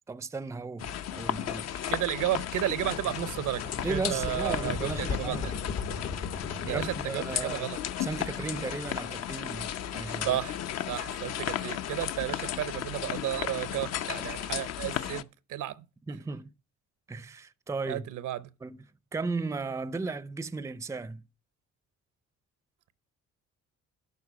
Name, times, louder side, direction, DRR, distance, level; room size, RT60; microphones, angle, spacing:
voice 1, 0.1-1.8 3.8-5.5 6.7-7.7 8.0-10.4 16.1-16.5 17.1-18.1 18.6-18.8 19.1-21.2, right 3 dB, 10° right, 0.5 m, -35 dB
sound 1, 0.8-15.2, left 10 dB, 60° left, 0.6 m, -35 dB
voice 2, 1.9-5.5 6.6-7.8 10.2-10.6 10.9-15.8 17.9-18.5, right 13 dB, 80° right, 0.7 m, -33 dB
sound 2, 2.7-7.6, left 5 dB, 80° left, 2.3 m, -37 dB
11.5 x 3.9 x 7.3 m
cardioid pair, 90°, 30 cm